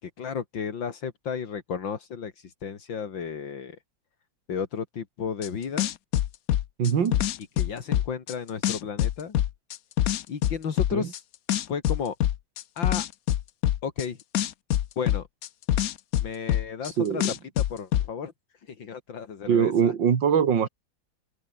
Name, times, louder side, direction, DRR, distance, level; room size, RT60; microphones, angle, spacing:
voice 1, 0.0-3.8 4.5-5.9 7.6-9.4 10.3-11.2 11.7-12.2 12.8-13.1 13.8-14.2 15.0-15.3 16.2-17.2 17.6-19.9, left 6 dB, 80° left, 2.9 m, -33 dB
sound 1, 5.4-5.5 5.8-8.3 8.6-11.2 11.5-14.0 14.3-16.9 17.2-18.1, left 12 dB, 60° left, 1.0 m, -24 dB
voice 2, 6.8-7.2 10.9-11.1 17.0-17.3 19.5-20.7, right 7 dB, 70° right, 2.6 m, -22 dB
omnidirectional pair, 2.0 m